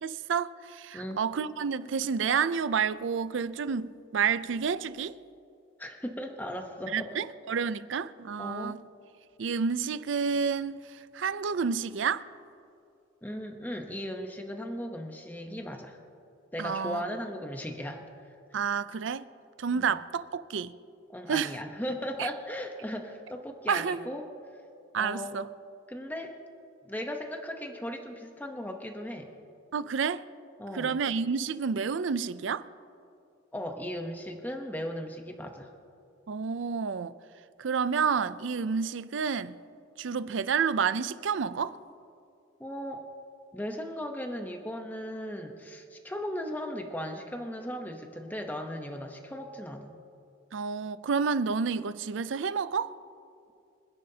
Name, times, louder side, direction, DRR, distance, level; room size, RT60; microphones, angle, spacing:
voice 1, 0.0-5.2 6.9-8.8 9.4-12.2 16.6-17.0 18.5-19.2 19.6-20.7 21.3-21.5 22.2-22.3 23.7-24.1 24.9-25.5 29.7-30.2 30.7-32.6 36.3-37.1 37.6-39.5 40.0-41.8 50.5-52.9, right 6 dB, 70° right, 0.4 m, -29 dB
voice 2, 5.8-7.2 8.4-8.8 13.2-16.0 16.5-18.0 18.5-18.6 19.7-20.0 21.1-24.3 25.0-25.3 25.9-26.4 26.9-29.3 30.6-31.0 33.5-35.7 42.6-43.1 43.5-50.0, equal, 10° left, 0.8 m, -37 dB
26.5 x 10.5 x 2.8 m
head